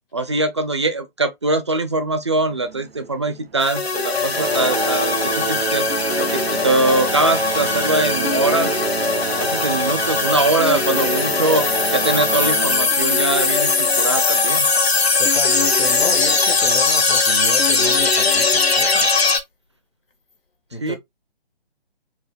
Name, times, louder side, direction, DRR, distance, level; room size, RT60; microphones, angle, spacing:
voice 1, 0.1-5.9 6.2-8.8 9.4-11.6 11.9-14.7 20.8-21.0, right 2 dB, 30° right, 0.4 m, -22 dB
sound 1, 2.5-3.9 4.2-14.4 15.3-15.4 16.1-16.2 16.8-16.9, right 6 dB, 80° right, 0.5 m, -28 dB
sound 2, 3.6-19.4, left 4 dB, 80° left, 0.9 m, -20 dB
voice 2, 15.2-19.1 20.7-21.0, left 3 dB, 65° left, 1.7 m, -31 dB
4.6 x 2.3 x 3.3 m
figure-of-eight pair, 145°, 30 cm